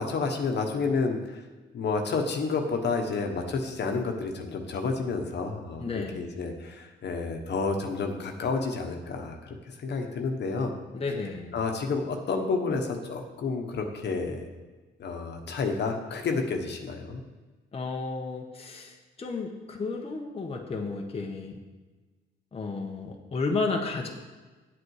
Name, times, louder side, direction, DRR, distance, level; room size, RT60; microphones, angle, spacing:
voice 1, 0.0-1.4 1.7-10.7 11.5-14.5 15.0-17.2, left 4 dB, 60° left, 3 dB, 1.4 m, -30 dB
voice 2, 5.8-6.2 10.9-11.6 17.7-21.6 22.5-24.1, left 3 dB, 30° left, 1 dB, 1.2 m, -32 dB
8.5 x 8.2 x 4.9 m, 1.3 s
cardioid pair, 90°, 20 cm